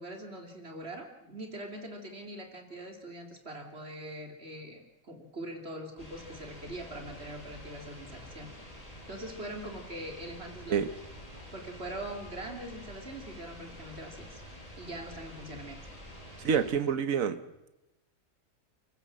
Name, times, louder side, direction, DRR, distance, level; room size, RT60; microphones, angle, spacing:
voice 1, 0.0-8.6 9.1-10.9 11.5-14.4 14.8-15.9, right 1 dB, 50° right, 4 dB, 3.1 m, -42 dB
sound 1, 6.0-16.7, equal, 25° left, 6.4 m, -48 dB
voice 2, 16.4-17.4, right 7 dB, 80° right, 12 dB, 1.5 m, -27 dB
29.0 x 15.5 x 7.5 m, 0.97 s
omnidirectional pair, 1.4 m